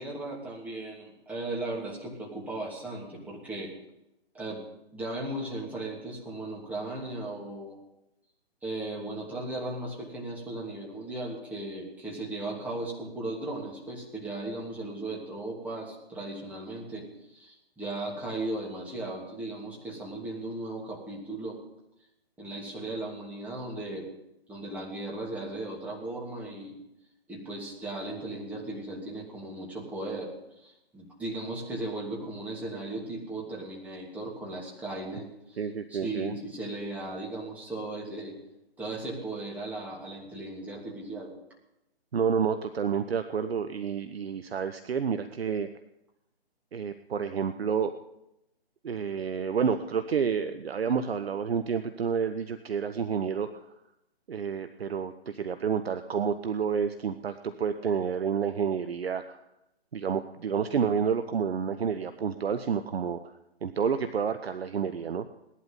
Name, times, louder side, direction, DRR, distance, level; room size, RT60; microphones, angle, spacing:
voice 1, 0.0-3.7 4.3-4.6 4.9-7.8 8.6-21.6 22.4-24.1 24.5-26.8 27.3-35.6 35.9-38.4 38.8-41.3, right 2 dB, 5° right, -4 dB, 2.8 m, -37 dB
voice 2, 35.6-36.3 42.1-45.7 46.7-48.0 48.8-53.6 54.3-59.4 59.9-63.3 63.6-65.2, right 6 dB, 70° right, 9 dB, 0.9 m, -29 dB
19.0 x 11.5 x 5.4 m, 0.88 s
figure-of-eight pair, 145°, 32 cm